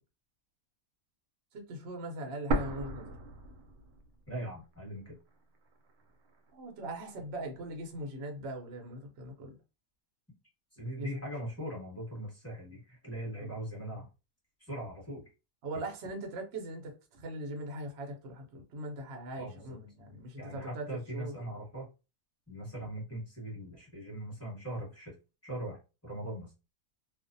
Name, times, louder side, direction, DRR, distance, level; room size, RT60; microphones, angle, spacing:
voice 1, 1.5-3.2 6.5-9.6 10.8-11.1 13.4-13.5 15.6-20.9 21.1-21.3 22.8-22.9, right 1 dB, 55° right, 0.8 m, -41 dB
sound 1, 2.5-4.4 4.7-4.8 5.5-6.5, right 2 dB, 90° right, 1.1 m, -35 dB
voice 2, 4.3-5.2 10.7-14.1 14.6-15.2 19.4-19.8 20.4-21.9 22.5-25.1 25.4-26.5, right 1 dB, 10° left, 1.0 m, -40 dB
2.5 x 2.1 x 2.5 m
omnidirectional pair, 1.5 m